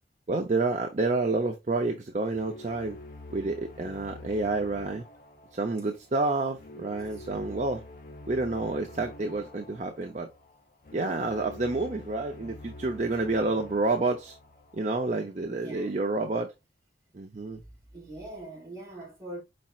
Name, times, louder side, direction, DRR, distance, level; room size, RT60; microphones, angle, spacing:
voice 1, 0.3-3.0 3.3-5.0 5.5-7.8 8.3-10.3 10.9-14.4 14.7-16.5 17.1-17.6, right 3 dB, 40° right, 0.5 m, -29 dB
sound 1, 2.3-15.4, left 2 dB, 50° left, 0.8 m, -47 dB
voice 2, 15.5-16.0 17.7-19.4, right 2 dB, 20° right, 2.6 m, -42 dB
5.3 x 4.2 x 2.3 m
head